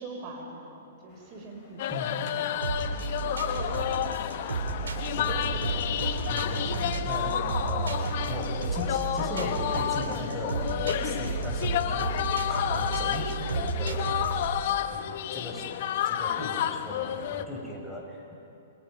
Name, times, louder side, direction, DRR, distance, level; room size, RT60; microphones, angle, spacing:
voice 1, 0.0-2.9 3.5-3.8, right 2 dB, 35° right, 1 dB, 5.6 m, -44 dB
sound 1, 1.1-17.7, left 3 dB, 30° left, 6.3 m, -53 dB
sound 2, 1.8-17.4, left 10 dB, 55° left, 1.0 m, -30 dB
sound 3, 2.6-14.6, right 4 dB, 75° right, 3.2 m, -32 dB
voice 2, 5.2-5.8 6.3-14.2 14.7-15.7 16.0-18.3, left 1 dB, ahead, -2 dB, 6.4 m, -38 dB
29.0 x 27.5 x 5.3 m, 2.6 s
hypercardioid pair, 115°, 0 cm